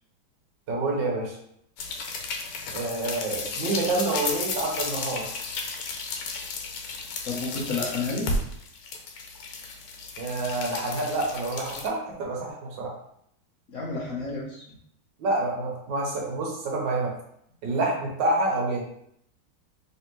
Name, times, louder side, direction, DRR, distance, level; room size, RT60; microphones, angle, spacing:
voice 1, 0.7-1.4 2.7-5.3 10.2-12.9 15.2-17.1 17.6-18.8, right 2 dB, 65° right, -1 dB, 1.5 m, -28 dB
sound 1, 1.8-11.9, left 3 dB, 85° left, 1.5 m, -33 dB
voice 2, 7.2-8.3 13.7-14.8, left 3 dB, 55° left, -5 dB, 0.9 m, -31 dB
3.4 x 3.4 x 3.0 m, 0.72 s
omnidirectional pair, 2.3 m